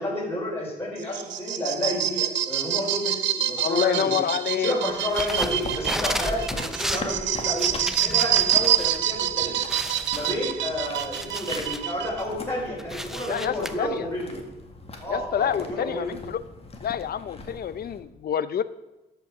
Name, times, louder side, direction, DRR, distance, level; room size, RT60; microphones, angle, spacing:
voice 1, 0.0-4.2 4.6-9.7 10.1-14.4 15.0-16.1, left 1 dB, 15° left, -5 dB, 4.4 m, -30 dB
sound 1, 1.0-12.2, right 11 dB, 85° right, 0.7 m, -26 dB
voice 2, 3.6-4.8 13.3-14.1 15.1-16.4 16.8-18.6, left 9 dB, 55° left, 15 dB, 0.6 m, -27 dB
sound 2, 5.0-9.0 9.3-9.4 9.7-11.9 12.3-13.7, equal, ahead, 0.7 m, -33 dB
sound 3, 5.4-18.0, left 3 dB, 35° left, 1.8 m, -41 dB
13.0 x 5.7 x 6.0 m, 1.1 s
cardioid pair, 90°, 18 cm